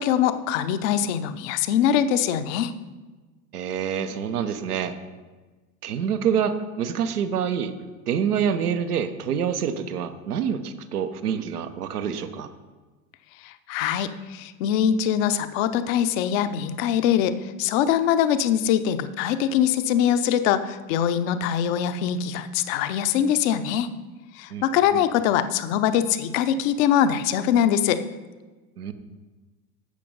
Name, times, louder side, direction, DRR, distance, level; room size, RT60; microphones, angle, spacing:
voice 1, 0.0-2.7 13.4-23.9 24.3-28.0, left 9 dB, 60° left, 11 dB, 0.9 m, -23 dB
voice 2, 3.5-4.9 5.8-7.7 8.1-12.5 24.5-24.6 24.9-25.0 28.8-28.9, right 7 dB, 80° right, 9 dB, 1.1 m, -26 dB
11.5 x 7.6 x 5.4 m, 1.3 s
hypercardioid pair, 80°, 45 cm